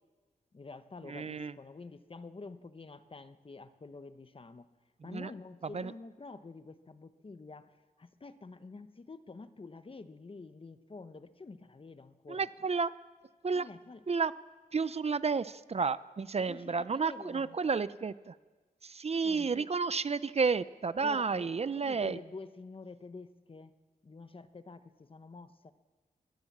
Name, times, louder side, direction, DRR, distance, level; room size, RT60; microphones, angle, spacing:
voice 1, 0.5-4.7 5.0-7.7 8.0-12.5 13.5-14.0 16.5-17.6 19.2-19.7 21.0-23.7 24.0-25.7, left 3 dB, 35° left, 11 dB, 1.0 m, -48 dB
voice 2, 1.1-1.5 5.1-5.3 5.7-5.9 12.3-12.9 13.4-13.6 14.1-14.3 14.7-18.3 18.8-22.2, right 5 dB, 45° right, 16 dB, 0.6 m, -31 dB
22.0 x 18.5 x 7.4 m, 1.3 s
wide cardioid pair, 110°, 15 cm